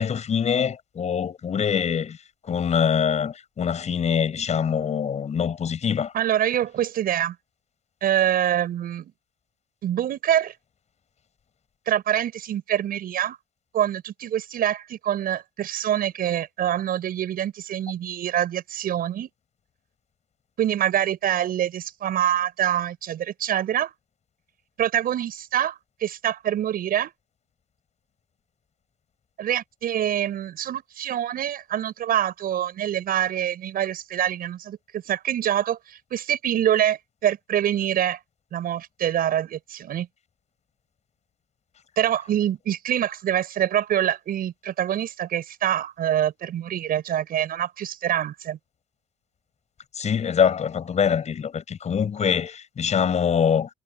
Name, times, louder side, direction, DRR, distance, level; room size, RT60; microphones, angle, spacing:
voice 1, 0.0-2.2 2.5-6.1 50.0-53.7, left 7 dB, 40° left, 7.3 m, -24 dB
voice 2, 6.1-7.4 8.0-9.1 9.8-10.5 11.9-13.4 13.7-19.3 20.6-23.9 24.8-27.1 29.4-38.2 38.5-40.1 42.0-48.6, right 11 dB, 60° right, 7.4 m, -25 dB
cardioid pair, 110°, 17 cm